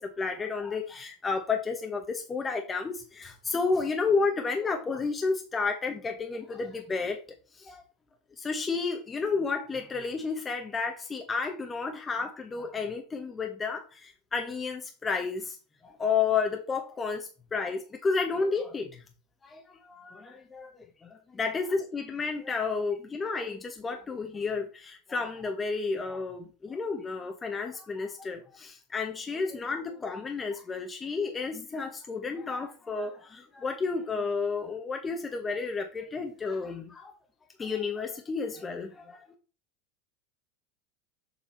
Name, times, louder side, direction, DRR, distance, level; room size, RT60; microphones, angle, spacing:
voice 1, 0.0-7.2 7.5-7.8 8.4-15.6 15.8-19.0 19.4-37.1 37.6-39.3, left 4 dB, 20° left, 1.1 m, -31 dB
6.9 x 4.7 x 4.4 m
supercardioid pair, 125°, 0 cm